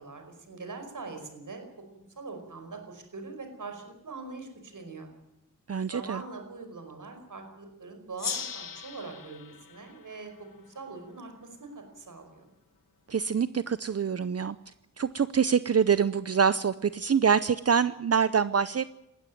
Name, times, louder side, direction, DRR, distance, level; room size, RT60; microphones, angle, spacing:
voice 1, 0.0-1.6 2.0-5.1 5.9-12.5, right 3 dB, 75° right, 5 dB, 5.2 m, -42 dB
voice 2, 5.7-6.2 13.1-14.6 15.0-18.8, right 6 dB, 50° right, 15 dB, 0.6 m, -25 dB
Gong, 8.2-11.3, left 6 dB, 85° left, 1.2 m, -39 dB
20.0 x 15.5 x 9.2 m, 0.89 s
wide cardioid pair, 100°, 32 cm